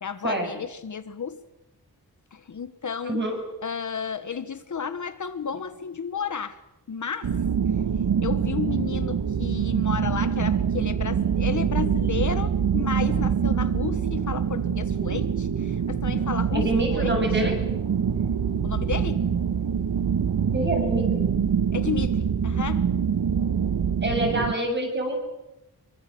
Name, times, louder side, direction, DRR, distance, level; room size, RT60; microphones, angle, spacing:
voice 1, 0.0-1.4 2.3-3.2 3.6-6.6 6.9-7.4 8.2-17.4 18.6-19.2 21.7-22.9, left 6 dB, 50° left, 10 dB, 1.3 m, -32 dB
voice 2, 3.1-3.4 16.5-17.5 20.5-21.2 24.0-25.2, right 1 dB, 30° right, 2 dB, 7.2 m, -26 dB
sound 1, 7.2-24.5, right 7 dB, 70° right, 1.6 m, -25 dB
26.5 x 23.5 x 7.8 m, 0.94 s
wide cardioid pair, 180°, 38 cm